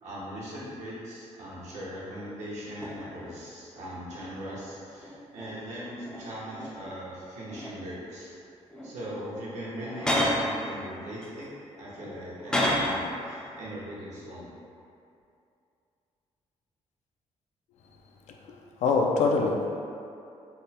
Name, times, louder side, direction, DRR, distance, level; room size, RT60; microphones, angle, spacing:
voice 1, 0.0-8.3 8.8-11.5 11.8-14.5, equal, 85° right, -8 dB, 1.1 m, -40 dB
sound 1, 2.1-2.3 2.8-3.3 4.1-5.6 6.0-7.0 7.4-8.0 8.7-9.0 9.7-10.5 11.2-13.1 13.4-13.7, left 1 dB, 5° left, 0.3 m, -31 dB
voice 2, 18.3-19.8, left 4 dB, 90° left, 1 dB, 0.4 m, -26 dB
3.4 x 2.1 x 4.1 m, 2.6 s
cardioid pair, 160°, 12 cm